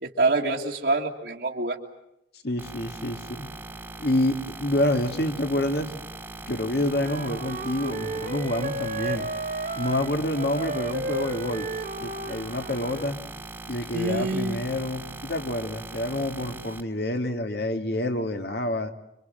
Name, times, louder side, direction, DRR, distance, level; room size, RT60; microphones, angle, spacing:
voice 1, 0.0-1.8 13.9-14.6, right 2 dB, 70° right, -3 dB, 2.2 m, -26 dB
voice 2, 2.4-3.5 4.0-5.9 6.4-9.3 9.8-11.7 12.0-13.2 13.7-18.9, left 1 dB, 65° left, 6 dB, 2.2 m, -28 dB
sound 1, 2.6-16.8, right 2 dB, 10° right, 1.7 m, -40 dB
Wind instrument woodwind instrument, 6.9-13.1, right 2 dB, 45° right, 2.0 m, -33 dB
27.0 x 25.0 x 7.7 m, 0.84 s
head